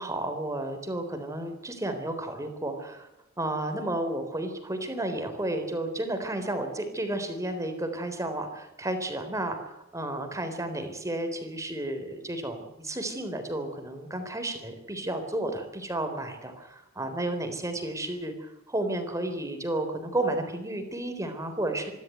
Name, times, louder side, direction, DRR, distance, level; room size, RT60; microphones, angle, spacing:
voice 1, 0.0-3.1 3.4-21.9, right 1 dB, 15° right, 7 dB, 3.8 m, -32 dB
26.5 x 13.0 x 9.3 m, 0.91 s
head